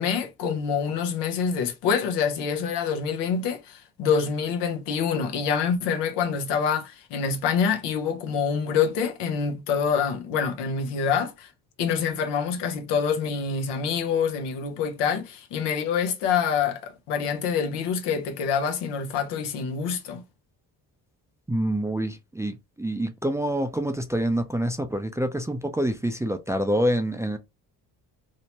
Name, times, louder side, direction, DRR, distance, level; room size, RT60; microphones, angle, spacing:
voice 1, 0.0-11.5 11.8-20.2, left 6 dB, 90° left, 0.7 m, -26 dB
voice 2, 21.5-27.4, right 1 dB, 10° right, 0.3 m, -26 dB
2.7 x 2.1 x 2.9 m
supercardioid pair, 70°, 41 cm